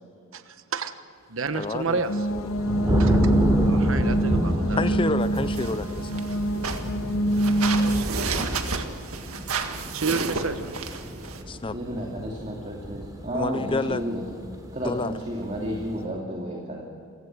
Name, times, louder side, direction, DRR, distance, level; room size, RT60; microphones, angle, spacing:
voice 1, 0.3-1.0 1.3-2.3 3.0-3.2 3.7-5.0 7.8-8.9 9.9-10.8, right 4 dB, 65° right, 10 dB, 1.2 m, -31 dB
voice 2, 1.5-2.0 4.8-6.2 10.1-10.2 11.5-11.8 13.3-14.0 14.8-15.1, left 3 dB, 25° left, 14 dB, 0.5 m, -29 dB
sound 1, 1.7-16.0, equal, 20° right, 3.2 m, -29 dB
sound 2, 2.1-8.0, right 1 dB, 70° left, 1.0 m, -25 dB
voice 3, 2.8-3.3 11.7-14.3 14.7-16.8, equal, 35° right, -1 dB, 2.6 m, -32 dB
sound 3, 5.2-11.4, right 5 dB, 90° right, 1.9 m, -32 dB
28.0 x 17.0 x 6.2 m, 2.4 s
head